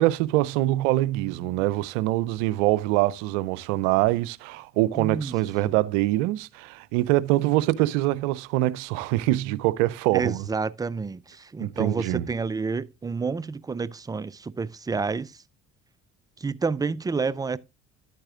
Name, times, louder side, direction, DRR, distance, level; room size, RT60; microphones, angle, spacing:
voice 1, 0.0-10.4 11.6-12.3, right 17 dB, 75° right, 0.5 m, -24 dB
voice 2, 5.0-5.3 5.6-5.8 10.1-15.3 16.4-17.6, right 4 dB, 10° right, 0.4 m, -29 dB
10.5 x 8.8 x 2.4 m
hypercardioid pair, 55°, 37 cm